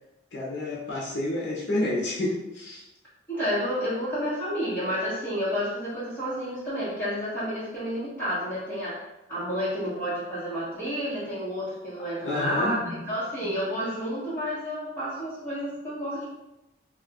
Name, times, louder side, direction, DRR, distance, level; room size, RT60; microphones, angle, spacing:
voice 1, 0.3-2.8 12.2-12.8, left 1 dB, 65° left, -5 dB, 0.7 m, -29 dB
voice 2, 3.3-9.0 9.3-16.2, equal, 10° left, -11 dB, 1.4 m, -30 dB
2.7 x 2.4 x 3.6 m, 0.93 s
head